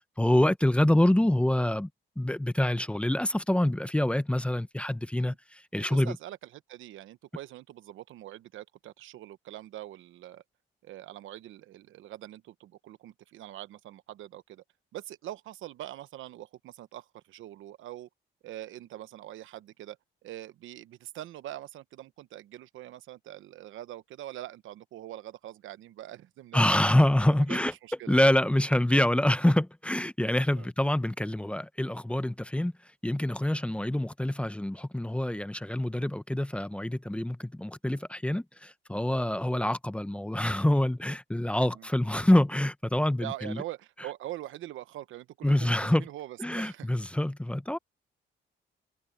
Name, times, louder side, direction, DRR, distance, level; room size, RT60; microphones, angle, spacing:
voice 1, 0.2-1.9 2.2-6.2 26.5-27.7 28.1-32.7 33.0-43.6 45.4-46.0 46.4-47.8, left 1 dB, 5° left, 0.8 m, -26 dB
voice 2, 5.9-10.4 10.8-14.6 14.9-18.1 18.4-20.0 20.2-27.0 27.5-28.1 30.6-30.7 41.7-41.9 43.2-47.1, right 14 dB, 80° right, 1.0 m, -43 dB
cardioid pair, 90°, 20 cm